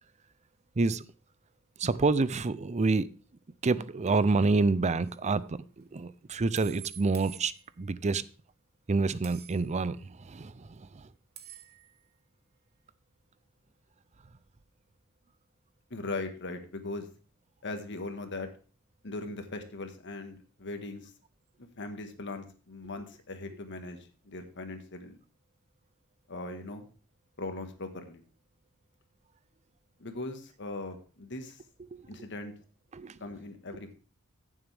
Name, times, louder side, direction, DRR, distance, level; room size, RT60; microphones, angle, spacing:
voice 1, 1.8-3.1 3.6-8.2 8.9-11.1 31.9-32.1 32.9-33.2, right 3 dB, 30° right, 0.5 m, -28 dB
sound 1, 5.0-5.2 6.6-8.0 9.2-9.9 11.4-12.0, right 11 dB, 50° right, 1.1 m, -49 dB
voice 2, 15.9-17.1 17.6-18.5 19.0-21.1 21.6-25.2 26.3-26.9 27.4-28.2 30.0-31.6 32.1-32.5 33.2-33.9, left 2 dB, 55° left, 1.6 m, -39 dB
15.0 x 7.3 x 3.5 m
head